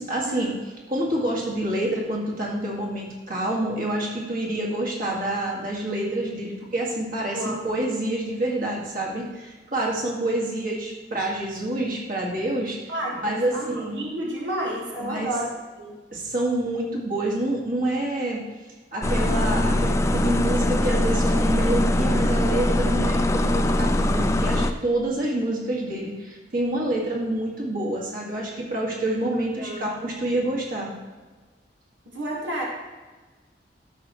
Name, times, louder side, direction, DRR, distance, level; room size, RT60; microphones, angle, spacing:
voice 1, 0.0-12.9 13.2-14.0 15.0-15.3 16.1-18.4 18.9-30.9, right 1 dB, 50° right, -2 dB, 2.0 m, -27 dB
voice 2, 7.3-7.9 12.9-15.5 15.8-16.0 29.6-29.9 32.1-32.6, right 1 dB, 85° right, -2 dB, 1.6 m, -31 dB
sound 1, 19.0-24.7, left 1 dB, 15° left, 0.4 m, -22 dB
12.5 x 6.9 x 3.1 m, 1.3 s
head